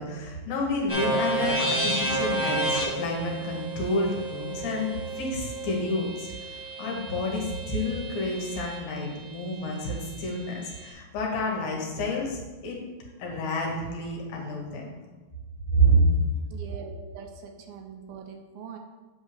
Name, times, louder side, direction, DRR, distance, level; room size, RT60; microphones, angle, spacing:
voice 1, 0.0-12.8 13.2-14.9 15.7-16.2, equal, 70° left, -1 dB, 3.0 m, -28 dB
sound 1, 0.9-8.8, right 2 dB, 10° left, 2.0 m, -31 dB
voice 2, 16.5-18.8, right 6 dB, 80° right, 4 dB, 2.4 m, -42 dB
8.3 x 3.6 x 6.6 m, 1.2 s
omnidirectional pair, 4.5 m